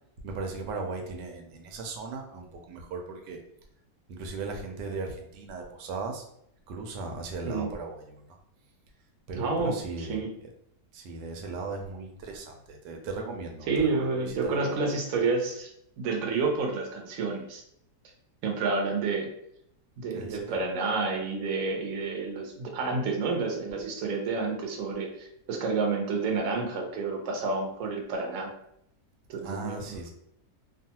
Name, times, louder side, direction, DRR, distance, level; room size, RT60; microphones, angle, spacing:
voice 1, 0.2-3.4 4.1-6.2 6.7-8.4 9.3-10.5 10.9-14.8 20.1-20.6 29.4-30.1, right 3 dB, 85° right, 3 dB, 1.2 m, -37 dB
voice 2, 9.4-10.3 13.7-15.7 16.0-17.6 18.4-19.3 20.0-28.5 29.3-30.1, right 4 dB, 65° right, 1 dB, 0.9 m, -29 dB
2.7 x 2.3 x 2.8 m, 0.73 s
omnidirectional pair, 1.8 m